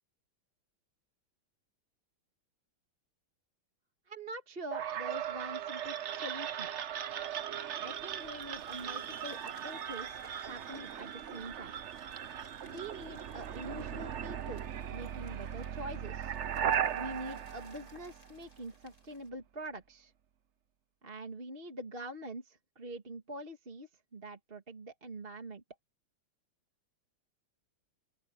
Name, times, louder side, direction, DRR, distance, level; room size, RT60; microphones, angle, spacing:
voice 1, 4.1-6.7 7.8-11.8 12.7-14.6 14.9-16.3 16.9-20.1 21.0-25.6, right 1 dB, 30° right, 2.3 m, -45 dB
sound 1, 4.7-18.6, right 9 dB, 55° right, 0.8 m, -38 dB
sound 2, 7.8-19.3, left 2 dB, 25° left, 3.6 m, -63 dB
open air
omnidirectional pair, 2.2 m